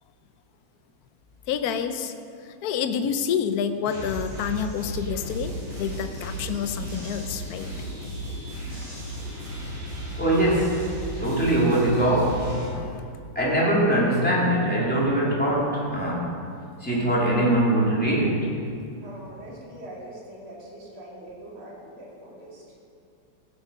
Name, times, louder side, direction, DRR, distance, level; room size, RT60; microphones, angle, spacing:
voice 1, 1.5-2.1 2.6-7.7 12.7-13.2, left 7 dB, 70° left, 8 dB, 0.9 m, -28 dB
sound 1, 3.8-12.7, equal, 60° right, 4.7 m, -34 dB
voice 2, 10.2-10.9 11.2-12.5 13.3-16.3 16.8-18.5, right 1 dB, 5° left, -7 dB, 2.8 m, -22 dB
voice 3, 19.0-22.6, right 1 dB, 75° right, -4 dB, 3.3 m, -42 dB
15.0 x 8.3 x 5.2 m, 2.4 s
omnidirectional pair, 2.3 m